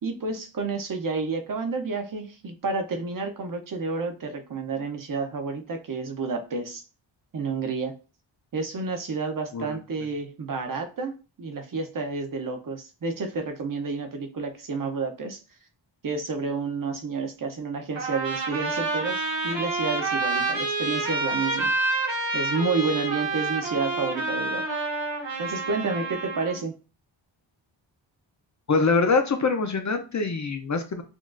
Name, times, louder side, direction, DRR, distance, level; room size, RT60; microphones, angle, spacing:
voice 1, 0.0-6.8 7.3-7.9 8.5-15.4 16.0-21.7 22.3-24.8 25.4-26.8, right 4 dB, 45° right, 5 dB, 0.6 m, -30 dB
Trumpet, 18.0-26.6, right 3 dB, 70° right, 1.3 m, -28 dB
voice 2, 28.7-31.0, left 4 dB, 40° left, 6 dB, 0.4 m, -24 dB
6.1 x 2.3 x 2.4 m, 0.34 s
wide cardioid pair, 175°, 46 cm